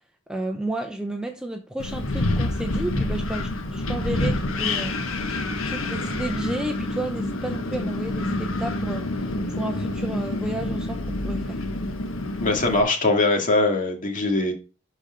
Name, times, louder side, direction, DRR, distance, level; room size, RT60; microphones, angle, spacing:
voice 1, 0.3-5.0 5.6-11.6, right 1 dB, 5° right, 0.8 m, -32 dB
Wind, 1.8-12.8, left 2 dB, 80° left, 1.3 m, -27 dB
voice 2, 12.4-14.5, left 2 dB, 40° left, 2.3 m, -21 dB
12.0 x 4.7 x 5.1 m
head